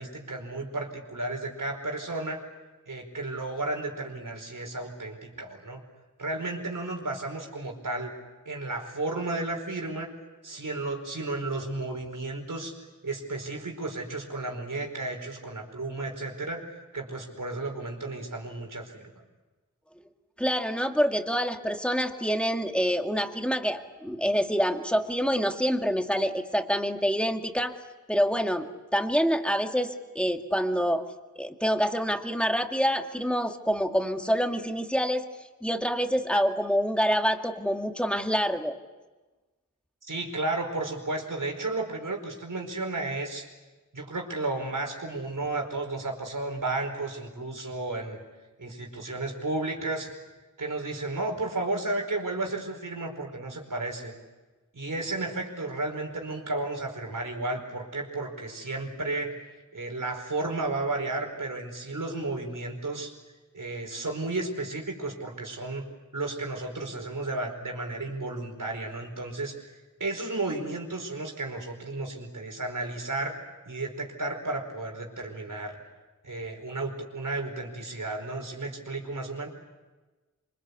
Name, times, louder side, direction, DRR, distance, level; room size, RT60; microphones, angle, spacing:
voice 1, 0.0-2.4 2.9-5.8 6.2-8.1 8.4-10.1 10.4-12.8 13.0-16.7 16.9-19.1 40.0-43.4 43.9-48.2 48.6-50.1 50.6-54.1 54.7-59.4 59.7-63.1 63.5-65.9 66.1-73.4 73.6-75.8 76.2-79.5, right 2 dB, 85° right, 3 dB, 4.9 m, -33 dB
voice 2, 20.4-27.7 28.1-28.7 28.9-31.0 31.4-35.2 35.6-38.8, equal, 5° left, 4 dB, 2.1 m, -26 dB
26.0 x 25.5 x 8.4 m, 1.2 s
wide cardioid pair, 75°, 31 cm